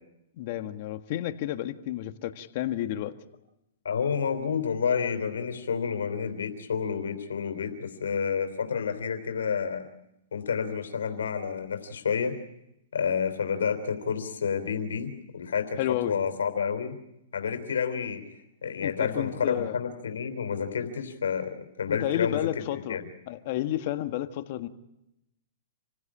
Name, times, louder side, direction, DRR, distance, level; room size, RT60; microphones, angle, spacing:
voice 1, 0.4-3.1 15.8-16.2 18.8-19.8 21.9-23.0 23.3-24.7, left 13 dB, 45° left, 8 dB, 1.7 m, -31 dB
voice 2, 3.8-9.9 10.3-12.3 12.9-16.9 17.3-18.2 18.6-21.5 21.8-22.6 22.9-23.1, left 6 dB, 85° left, 5 dB, 3.4 m, -29 dB
27.5 x 16.0 x 8.7 m, 0.86 s
hypercardioid pair, 145°, 0 cm